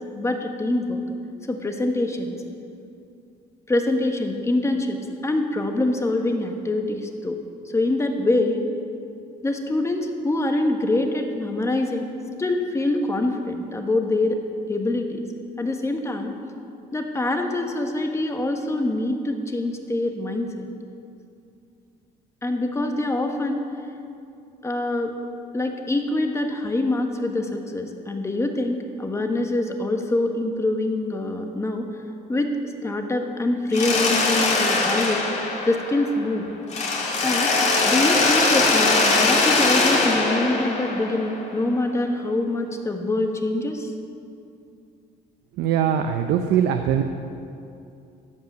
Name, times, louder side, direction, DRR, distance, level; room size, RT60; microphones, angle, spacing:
voice 1, 0.2-1.0 1.5-2.4 3.7-7.4 7.7-8.6 9.4-12.1 12.4-14.4 14.7-15.2 15.6-16.3 16.9-20.7 22.4-23.6 24.6-25.1 25.5-31.9 32.3-32.5 32.8-35.2 35.7-36.5 37.2-37.5 37.8-43.9, left 2 dB, 15° left, 4 dB, 1.3 m, -24 dB
Mechanisms, 33.7-36.3 36.7-41.5, left 3 dB, 45° left, 2.3 m, -21 dB
voice 2, 45.6-47.0, right 9 dB, 85° right, 6 dB, 0.7 m, -21 dB
14.0 x 5.6 x 9.1 m, 2.5 s
cardioid pair, 110°, 17 cm